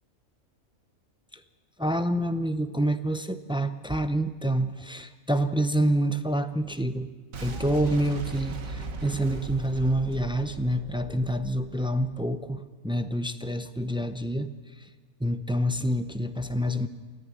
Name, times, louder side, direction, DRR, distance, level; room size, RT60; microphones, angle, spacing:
voice 1, 1.8-7.1 7.4-14.5 15.2-16.9, right 1 dB, 5° right, 9 dB, 0.4 m, -27 dB
Boom, 7.3-12.3, right 3 dB, 75° right, 1.8 m, -38 dB
28.0 x 10.5 x 9.2 m, 1.4 s
omnidirectional pair, 1.4 m